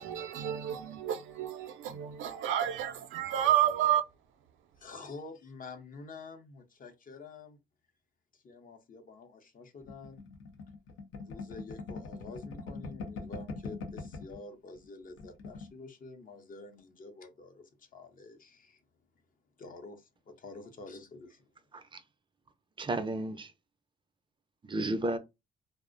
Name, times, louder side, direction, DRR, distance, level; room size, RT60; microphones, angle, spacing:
voice 1, 0.0-4.0, right 11 dB, 85° right, 0.4 m, -30 dB
voice 2, 4.8-7.6 8.3-10.2 11.2-18.8 19.6-21.4, left 3 dB, 45° left, 0.6 m, -48 dB
sound 1, 9.9-14.4 14.7-14.9 15.1-15.7, left 3 dB, 80° left, 0.6 m, -42 dB
voice 3, 22.8-23.5 24.6-25.2, right 2 dB, 25° right, 0.4 m, -33 dB
2.4 x 2.0 x 2.5 m
cardioid pair, 90°, 20 cm